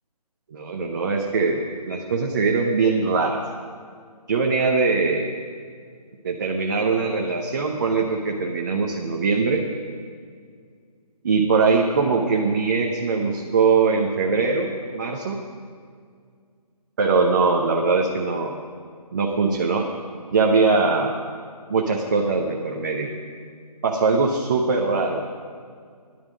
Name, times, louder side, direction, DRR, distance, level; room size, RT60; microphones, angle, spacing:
voice 1, 0.5-3.4 4.3-5.3 6.2-9.6 11.2-15.4 17.0-18.5 19.1-19.9 20.3-21.2 21.7-23.1 23.8-25.2, right 4 dB, 30° right, 0 dB, 0.9 m, -21 dB
16.5 x 11.5 x 5.0 m, 2.1 s
figure-of-eight pair, 155°, 21 cm